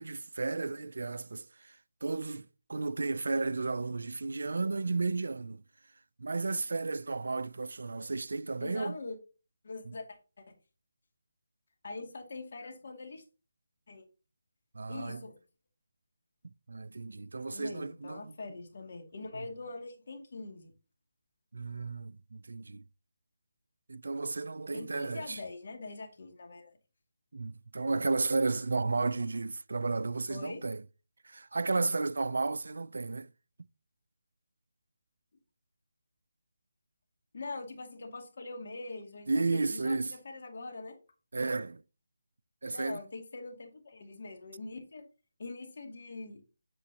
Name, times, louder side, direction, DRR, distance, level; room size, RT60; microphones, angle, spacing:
voice 1, 0.0-5.6 6.2-9.0 9.9-10.0 14.7-15.2 16.4-18.3 19.3-19.5 21.5-22.8 23.9-25.4 27.3-30.8 31.2-33.3 39.3-40.1 41.3-41.8 42.6-43.0, right 3 dB, 75° right, 0.3 m, -33 dB
voice 2, 8.5-9.2 9.6-10.0 10.4-10.5 11.8-13.2 13.9-14.0 14.9-15.3 17.5-20.7 24.7-26.7 30.3-30.6 37.3-40.9 42.7-45.0 45.4-46.4, left 3 dB, 55° left, 2.2 m, -43 dB
8.4 x 6.9 x 2.8 m
figure-of-eight pair, 165°, 0 cm